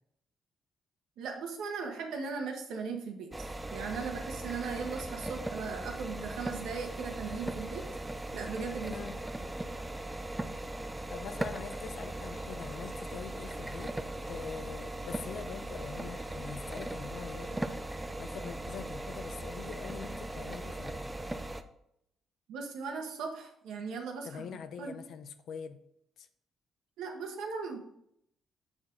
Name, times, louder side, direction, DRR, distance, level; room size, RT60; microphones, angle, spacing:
voice 1, 1.2-3.5 3.7-7.8 8.3-8.9 22.5-24.5 24.8-24.9 27.0-27.8, right 5 dB, 85° right, 3 dB, 1.3 m, -38 dB
sound 1, 3.3-21.6, right 1 dB, 15° right, 0.6 m, -39 dB
voice 2, 11.1-14.0 14.3-21.3 24.2-25.8 26.2-26.3, left 7 dB, 70° left, 9 dB, 0.6 m, -44 dB
6.2 x 6.1 x 3.8 m, 0.75 s
cardioid pair, 90°, 0 cm